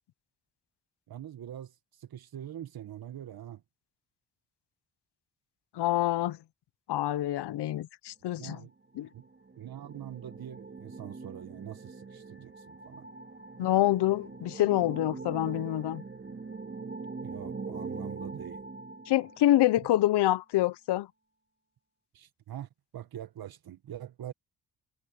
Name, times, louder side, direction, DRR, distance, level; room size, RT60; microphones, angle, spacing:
voice 1, 1.1-3.6 8.4-8.7 9.1-9.3 9.6-13.1 17.2-18.6 22.1-24.3, right 11 dB, 65° right, 1.5 m, -44 dB
voice 2, 5.7-6.4 6.9-8.6 9.0-9.1 13.6-16.0 19.1-21.1, left 14 dB, 80° left, 0.9 m, -26 dB
sound 1, 8.9-19.7, right 4 dB, 25° right, 3.8 m, -42 dB
cardioid pair, 85°, 39 cm